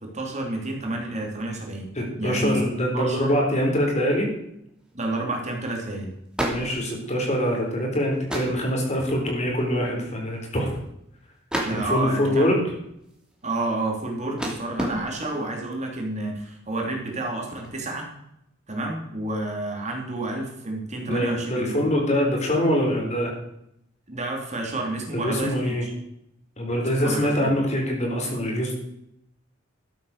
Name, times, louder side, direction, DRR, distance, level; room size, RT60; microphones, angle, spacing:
voice 1, 0.1-1.9 2.2-2.6 2.9-3.4 4.9-6.1 11.6-12.6 13.4-18.1 18.7-21.8 24.1-25.9 26.8-27.5, right 2 dB, 35° right, 1 dB, 3.1 m, -30 dB
sound 1, 1.9-2.0 2.2-2.7 3.1-3.2 4.6-4.9 5.3-5.4 5.6-5.9 6.2-7.6 8.1-8.8 9.2-9.5 9.8-9.9 10.1-10.9 11.5-12.2 12.8-15.6 16.2-16.5 16.8-17.8, right 1 dB, 5° right, 2.9 m, -33 dB
voice 2, 2.0-4.3 6.5-10.7 11.7-12.7 21.0-23.3 25.1-25.8 26.6-28.7, equal, 35° left, 1 dB, 4.1 m, -24 dB
13.0 x 9.5 x 6.7 m, 0.77 s
head